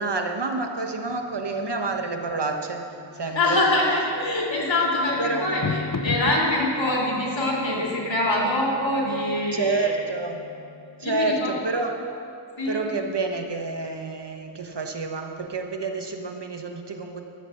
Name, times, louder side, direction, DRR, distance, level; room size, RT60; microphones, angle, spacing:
voice 1, 0.0-3.6 5.2-5.5 9.5-10.5 11.0-12.0 12.7-17.2, right 3 dB, 60° right, 4 dB, 1.2 m, -28 dB
sound 1, 1.1-11.9, left 4 dB, 45° left, 0.8 m, -38 dB
voice 2, 3.3-9.9 11.0-11.5 12.6-12.8, left 1 dB, 75° left, -4 dB, 3.0 m, -24 dB
13.5 x 7.7 x 6.3 m, 2.6 s
wide cardioid pair, 45°, 46 cm